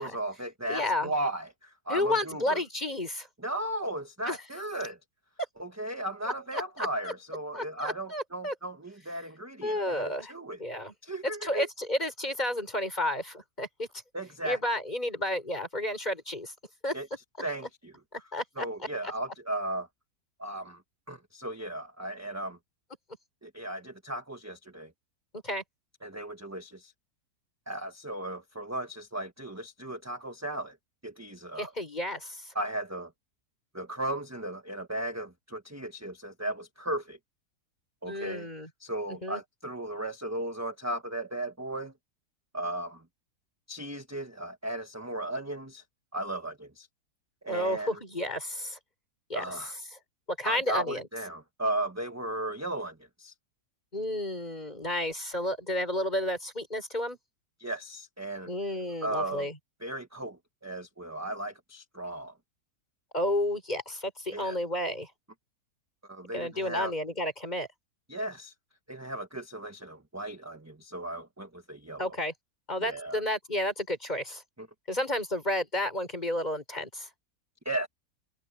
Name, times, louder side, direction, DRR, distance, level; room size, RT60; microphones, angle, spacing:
voice 1, 0.0-2.6 3.4-5.0 5.6-10.6 11.0-11.7 14.1-14.6 16.9-17.1 17.4-17.9 18.6-19.9 20.4-20.8 21.1-22.6 23.4-24.9 26.0-26.9 27.7-30.8 31.0-31.7 32.5-33.1 33.7-37.2 38.0-38.5 38.8-41.9 42.5-43.0 43.7-45.8 46.1-46.9 47.4-48.0 49.3-49.7 50.4-53.3 57.6-58.5 59.0-59.5 59.8-62.3 64.3-64.6 66.0-66.9 68.1-68.5 68.9-72.2 72.8-73.2 74.6-74.7 77.6-77.9, right 1 dB, 10° right, 1.2 m, -36 dB
voice 2, 0.7-1.1 1.9-3.3 4.2-4.4 6.5-7.1 7.5-8.5 9.6-10.3 10.6-10.9 11.2-13.9 14.4-16.5 16.8-16.9 18.1-18.7 25.4-25.6 31.6-32.5 38.0-38.7 39.1-39.4 47.5-48.8 49.3-49.4 50.4-51.0 53.9-57.2 58.5-59.6 63.1-65.1 66.3-67.7 72.0-72.3 72.7-74.4 74.9-77.1, left 1 dB, 25° left, 6.6 m, -31 dB
omnidirectional pair, 1.7 m